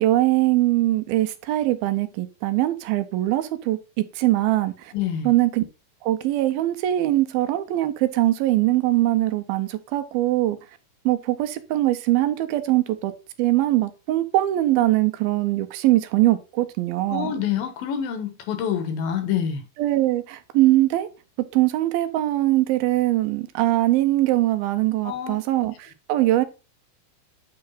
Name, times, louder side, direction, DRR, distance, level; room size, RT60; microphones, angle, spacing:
voice 1, 0.0-4.9 5.3-5.6 6.0-10.6 11.1-13.1 13.4-17.3 19.8-21.1 21.5-26.5, right 16 dB, 80° right, 2.6 m, -22 dB
voice 2, 4.9-5.3 17.1-19.6 25.0-25.4, left 8 dB, 75° left, 2.9 m, -26 dB
8.8 x 3.2 x 5.5 m
omnidirectional pair, 4.3 m